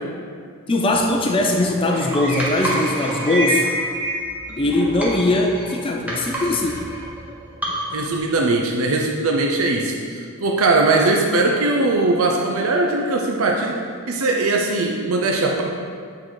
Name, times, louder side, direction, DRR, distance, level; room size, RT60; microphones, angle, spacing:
voice 1, 0.7-3.7 4.6-6.8, left 2 dB, 25° left, 1 dB, 0.4 m, -20 dB
sound 1, 0.9-8.2, right 1 dB, 5° right, 0.9 m, -28 dB
voice 2, 7.9-15.6, right 2 dB, 75° right, 1 dB, 0.6 m, -20 dB
8.6 x 3.9 x 4.6 m, 2.2 s
head